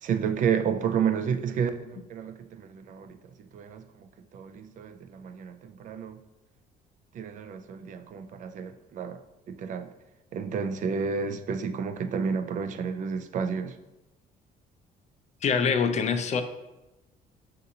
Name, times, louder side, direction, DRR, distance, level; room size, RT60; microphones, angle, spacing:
voice 1, 0.0-3.2 3.5-6.2 7.1-9.2 9.5-9.9 10.3-13.8, right 6 dB, 50° right, 0.4 m, -31 dB
voice 2, 15.4-16.4, left 6 dB, 45° left, 0.4 m, -24 dB
6.6 x 2.5 x 2.7 m
cardioid pair, 110°, 17 cm